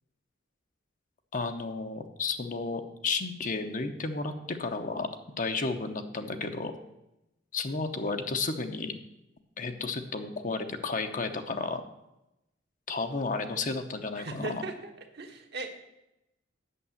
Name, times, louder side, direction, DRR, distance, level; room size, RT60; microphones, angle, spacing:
voice 1, 1.3-5.1 5.4-6.7 7.5-8.9 9.6-11.8 12.9-14.6, left 3 dB, 45° left, 7 dB, 0.9 m, -32 dB
voice 2, 14.1-14.7 15.1-15.8, right 2 dB, 55° right, 4 dB, 1.4 m, -37 dB
8.4 x 7.3 x 7.2 m, 0.90 s
head